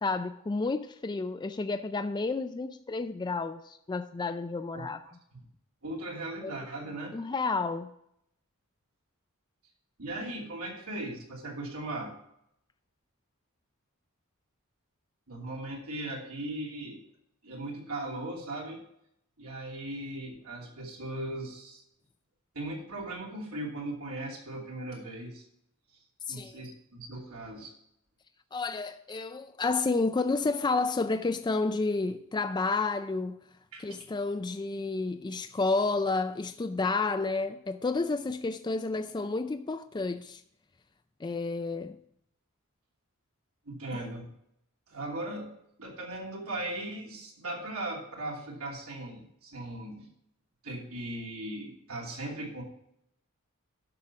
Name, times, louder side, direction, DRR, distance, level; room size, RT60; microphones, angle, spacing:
voice 1, 0.0-5.0 6.4-6.5 7.1-7.9 26.3-26.7 28.5-33.4 33.8-40.4 41.2-42.0, left 3 dB, 20° left, 0.4 m, -30 dB
voice 2, 5.8-7.1 10.0-12.1 15.3-17.0 17.4-18.8 19.4-21.8 22.5-25.4 26.3-27.7 33.7-33.8 43.7-44.3 44.9-45.5 45.8-50.1 50.6-52.6, right 1 dB, 75° right, 2.9 m, -38 dB
11.5 x 6.3 x 5.7 m
head